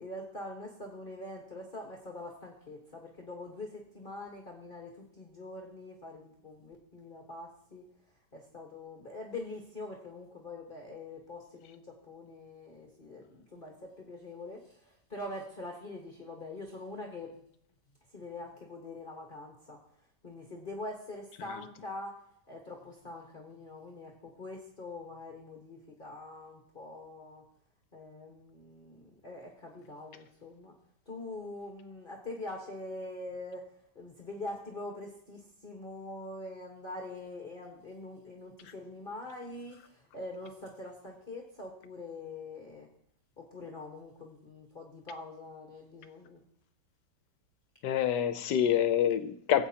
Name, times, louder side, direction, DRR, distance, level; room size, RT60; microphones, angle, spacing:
voice 1, 0.0-7.8 8.3-17.3 18.1-19.8 20.2-22.2 22.5-27.4 27.9-30.7 31.1-33.6 33.9-42.9 43.4-46.4, left 2 dB, 30° left, -1 dB, 1.4 m, -44 dB
voice 2, 47.8-49.7, left 10 dB, 80° left, 11 dB, 1.3 m, -27 dB
17.5 x 8.6 x 2.9 m, 0.70 s
omnidirectional pair, 1.9 m